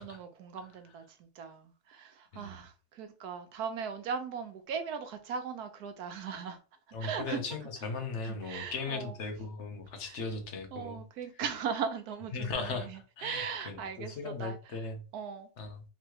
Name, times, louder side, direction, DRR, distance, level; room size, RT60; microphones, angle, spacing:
voice 1, 0.0-6.6 7.0-7.4 8.2-9.1 10.0-10.2 10.7-14.8 15.1-15.5, right 6 dB, 75° right, 1.3 m, -39 dB
voice 2, 6.9-11.0 12.3-12.9 13.2-15.0 15.6-15.8, left 4 dB, 50° left, 1.2 m, -38 dB
3.7 x 3.1 x 4.6 m
omnidirectional pair, 1.7 m